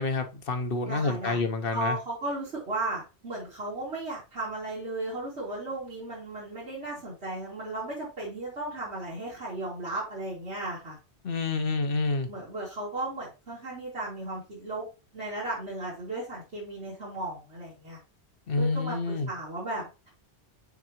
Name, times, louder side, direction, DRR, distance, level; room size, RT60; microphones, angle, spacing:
voice 1, 0.0-2.0 11.2-12.3 18.5-19.3, left 3 dB, 60° left, 1.1 m, -28 dB
voice 2, 0.9-1.4 1.7-11.0 12.3-14.9 15.1-18.0 18.6-20.1, right 2 dB, 75° right, 3.1 m, -35 dB
7.1 x 4.7 x 3.0 m
omnidirectional pair, 1.1 m